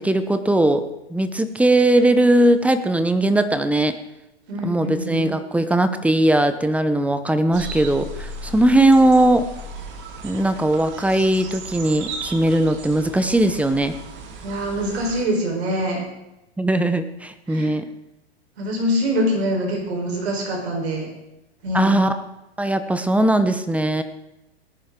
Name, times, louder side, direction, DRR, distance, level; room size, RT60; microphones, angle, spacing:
voice 1, 0.0-4.0 4.6-9.5 10.2-14.0 16.6-17.9 21.7-22.2 22.6-24.0, right 1 dB, 5° right, 10 dB, 0.8 m, -19 dB
voice 2, 4.5-5.3 14.4-16.0 17.5-17.7 18.6-21.1 21.6-22.1, equal, 70° right, 1 dB, 4.4 m, -24 dB
sound 1, 7.5-15.2, right 2 dB, 35° right, 2.1 m, -36 dB
19.0 x 10.5 x 3.8 m, 0.92 s
hypercardioid pair, 115°, 32 cm